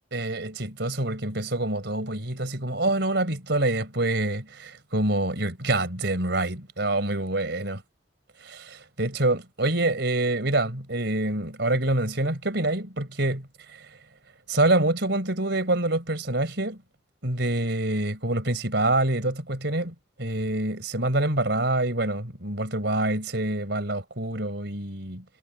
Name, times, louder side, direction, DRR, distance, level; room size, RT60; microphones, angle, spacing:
voice 1, 0.1-7.8 8.4-13.4 13.7-13.9 14.5-16.8 17.2-19.9 20.2-25.2, right 2 dB, 60° right, 4.5 m, -26 dB
head